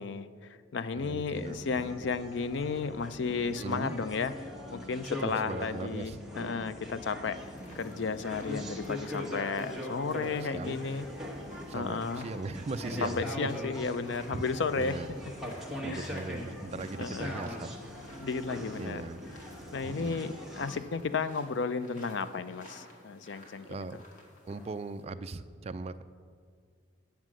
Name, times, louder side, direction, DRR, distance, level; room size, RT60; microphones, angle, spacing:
voice 1, 0.0-4.3 4.7-7.4 7.7-11.1 11.7-12.3 13.0-15.0 15.8-16.1 17.0-17.3 18.2-19.0 19.7-23.9, left 4 dB, 70° left, 13 dB, 0.5 m, -33 dB
voice 2, 1.0-1.8 3.6-4.0 5.2-6.2 10.4-10.8 11.7-13.5 14.3-14.4 14.8-15.1 15.8-17.7 18.8-19.2 19.8-20.2 23.7-24.0 24.5-26.0, right 3 dB, 35° right, 11 dB, 0.3 m, -39 dB
sound 1, 1.3-20.8, left 1 dB, ahead, 1.2 m, -41 dB
sound 2, 7.4-25.0, left 1 dB, 40° left, 1.7 m, -54 dB
9.1 x 7.4 x 6.2 m, 2.1 s
head